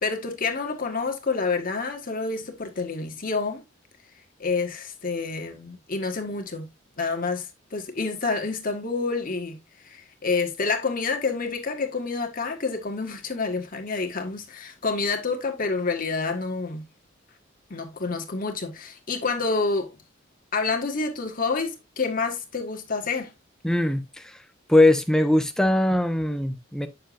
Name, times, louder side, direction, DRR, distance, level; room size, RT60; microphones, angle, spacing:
voice 1, 0.0-3.6 4.4-6.7 7.0-9.6 9.8-16.8 17.7-19.9 20.5-23.3, left 4 dB, 45° left, 1.5 m, -28 dB
voice 2, 23.6-24.4 24.7-26.9, left 1 dB, 5° left, 0.8 m, -21 dB
9.0 x 6.9 x 2.5 m
head